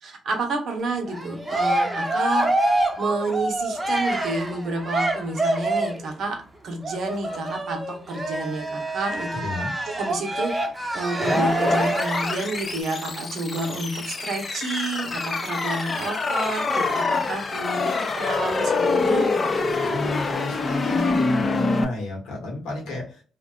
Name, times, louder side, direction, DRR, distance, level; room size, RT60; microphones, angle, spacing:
voice 1, 0.0-2.5 3.0-9.4 10.0-10.5 10.9-19.6, right 2 dB, 70° right, 3 dB, 0.8 m, -29 dB
Cheering, 1.1-6.1 6.8-12.4, right 1 dB, 20° right, 0.7 m, -26 dB
voice 2, 9.4-9.7 19.9-23.2, left 2 dB, 90° left, -2 dB, 1.2 m, -31 dB
sound 1, 11.2-21.8, left 3 dB, 40° left, 0.5 m, -25 dB
2.5 x 2.2 x 2.3 m, 0.40 s
supercardioid pair, 65°, 0 cm